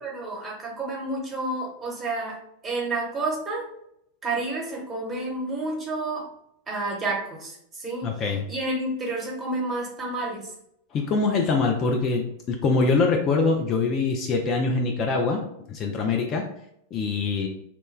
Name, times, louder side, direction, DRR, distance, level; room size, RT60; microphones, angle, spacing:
voice 1, 0.0-2.4 2.6-3.7 4.2-6.3 6.7-8.1 8.5-10.5, right 2 dB, 20° right, -2 dB, 1.0 m, -30 dB
voice 2, 8.0-8.4 10.9-12.2 12.5-15.4 15.7-16.4 16.9-17.5, left 4 dB, 30° left, 2 dB, 0.4 m, -23 dB
2.9 x 2.1 x 3.2 m, 0.74 s
figure-of-eight pair, 90°, 0 cm